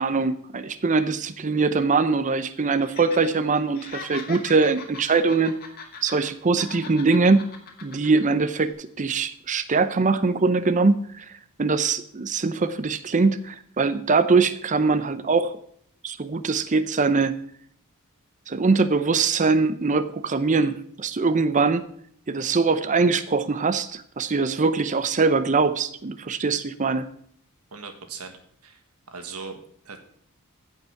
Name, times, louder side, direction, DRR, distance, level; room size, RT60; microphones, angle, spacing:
voice 1, 0.0-5.5 6.0-7.5 7.8-11.2 11.6-15.5 16.0-17.3 18.5-21.8 22.3-27.0, right 4 dB, 35° right, 12 dB, 0.6 m, -22 dB
Laughter, 2.8-3.3 3.6-6.3 6.6-8.2 8.6-8.7, left 5 dB, 45° left, 1.9 m, -40 dB
voice 2, 27.7-28.8 29.1-29.6 29.8-30.0, right 4 dB, 80° right, 6 dB, 1.6 m, -39 dB
15.5 x 5.5 x 5.8 m, 0.64 s
head